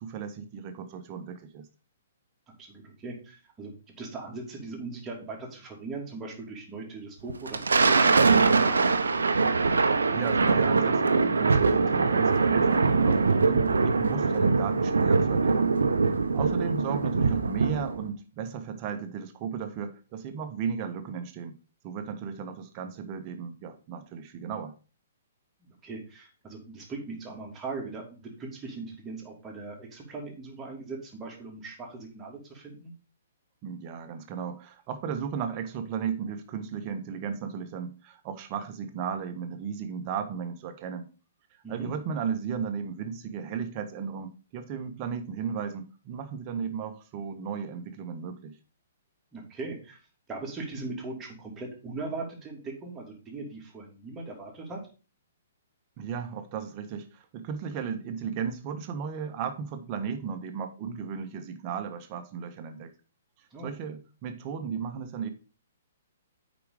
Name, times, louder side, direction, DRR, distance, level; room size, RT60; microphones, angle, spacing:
voice 1, 0.0-1.7 10.1-15.7 16.3-21.6 21.8-24.7 33.6-41.1 41.5-48.5 56.0-62.9 63.4-65.3, right 7 dB, 35° right, 1.3 m, -35 dB
voice 2, 2.6-8.6 16.5-16.7 25.6-32.9 41.6-41.9 49.3-50.0 50.3-54.8 63.5-63.7, right 3 dB, 15° right, 3.0 m, -39 dB
Thunder, 7.3-18.1, right 4 dB, 75° right, 0.9 m, -23 dB
8.4 x 5.3 x 5.0 m
figure-of-eight pair, 125°, 0 cm